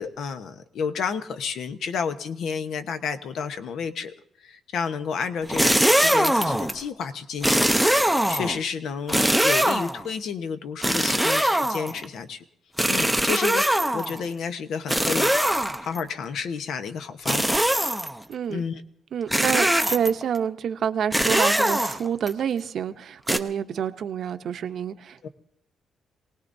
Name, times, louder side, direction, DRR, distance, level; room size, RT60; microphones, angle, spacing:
voice 1, 0.0-4.1 4.4-12.4 12.9-17.7 18.5-18.8 25.2-25.3, left 6 dB, 70° left, 9 dB, 1.0 m, -31 dB
sound 1, 5.4-6.8 7.4-8.6 9.1-10.0 10.8-12.0 12.8-14.2 14.9-16.0 17.3-18.2 19.3-20.2 21.1-22.3 23.3-23.4, right 1 dB, ahead, 0.6 m, -22 dB
voice 2, 18.3-18.6 19.1-25.3, right 8 dB, 60° right, 9 dB, 0.7 m, -28 dB
27.0 x 18.5 x 2.7 m, 0.73 s
cardioid pair, 135°, 0 cm